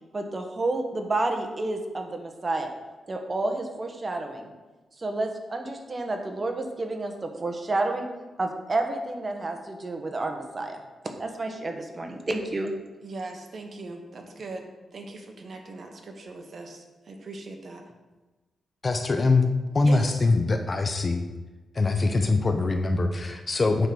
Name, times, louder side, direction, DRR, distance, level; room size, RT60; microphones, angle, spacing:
voice 1, 0.1-2.7 3.1-4.5 5.0-8.1 8.4-10.8 11.2-12.7, right 2 dB, 30° right, 4 dB, 1.1 m, -30 dB
voice 2, 13.0-14.7 14.9-17.8 19.8-20.3, right 2 dB, 50° right, 2 dB, 1.2 m, -40 dB
voice 3, 18.8-19.5 19.7-21.2 21.7-23.9, left 3 dB, 30° left, 6 dB, 0.6 m, -23 dB
9.1 x 3.8 x 6.0 m, 1.2 s
wide cardioid pair, 135°, 0 cm